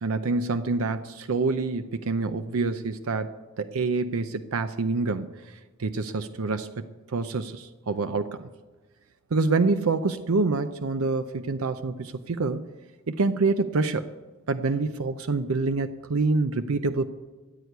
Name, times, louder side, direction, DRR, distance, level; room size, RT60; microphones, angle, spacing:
voice 1, 0.0-5.3 5.8-6.7 7.1-8.5 9.3-12.6 13.1-14.1 14.5-17.1, right 3 dB, 85° right, 10 dB, 0.6 m, -26 dB
14.0 x 8.3 x 9.2 m, 1.3 s
head